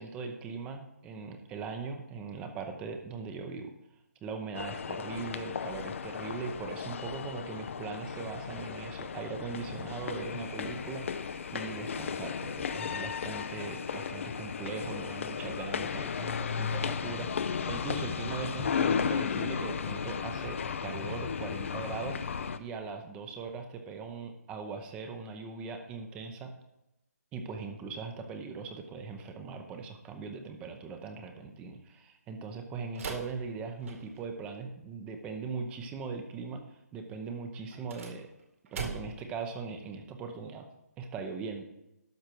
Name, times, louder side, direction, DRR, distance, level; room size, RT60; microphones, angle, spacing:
voice 1, 0.0-3.7 4.2-26.5 27.3-38.3 38.7-40.7 41.0-41.6, right 5 dB, 10° right, 6 dB, 0.8 m, -40 dB
sound 1, 4.5-22.6, left 6 dB, 50° left, 0.6 m, -35 dB
sound 2, 10.2-22.5, left 5 dB, 70° left, 2.5 m, -50 dB
sound 3, 32.9-34.3 37.7-39.3, right 4 dB, 55° right, 2.3 m, -41 dB
12.0 x 6.5 x 4.6 m, 0.88 s
hypercardioid pair, 155°, 9 cm